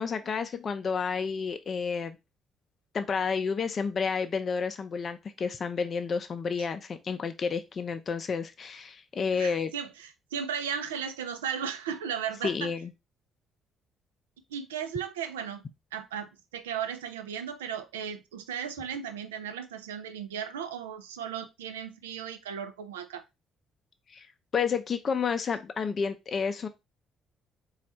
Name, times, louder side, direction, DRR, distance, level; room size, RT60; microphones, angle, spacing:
voice 1, 0.0-2.2 2.9-9.7 12.4-12.9 24.1-24.3 24.5-26.7, left 5 dB, 45° left, 0.5 m, -30 dB
voice 2, 9.3-12.7 14.5-15.6 15.9-23.2, right 8 dB, 85° right, 0.4 m, -36 dB
4.1 x 2.4 x 4.2 m
hypercardioid pair, 45°, 0 cm